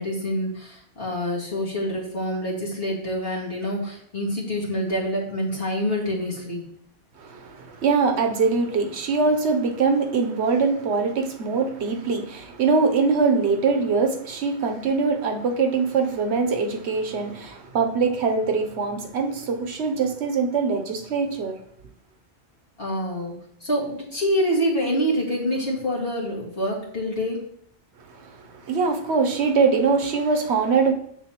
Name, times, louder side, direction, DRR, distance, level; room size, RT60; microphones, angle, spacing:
voice 1, 0.0-6.6 22.8-23.3 23.6-27.4, equal, 60° left, -4 dB, 2.2 m, -26 dB
voice 2, 7.2-21.6 28.6-30.9, right 4 dB, 75° right, 6 dB, 1.0 m, -23 dB
7.0 x 6.7 x 3.0 m, 0.66 s
omnidirectional pair, 1.1 m